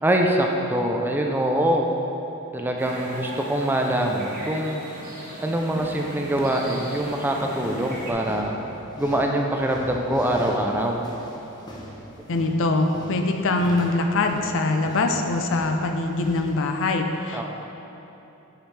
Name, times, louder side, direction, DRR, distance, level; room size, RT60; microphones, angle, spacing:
voice 1, 0.0-1.9 2.5-4.8 5.4-8.6 9.0-11.0 17.3-17.4, right 1 dB, 10° right, 1 dB, 0.4 m, -24 dB
sound 1, 2.8-8.1, right 1 dB, 40° right, 1.6 m, -38 dB
sound 2, 5.4-16.7, equal, 20° left, 0.9 m, -42 dB
voice 2, 12.3-17.4, left 2 dB, 65° left, 4 dB, 0.5 m, -23 dB
8.9 x 5.2 x 3.3 m, 3.0 s
head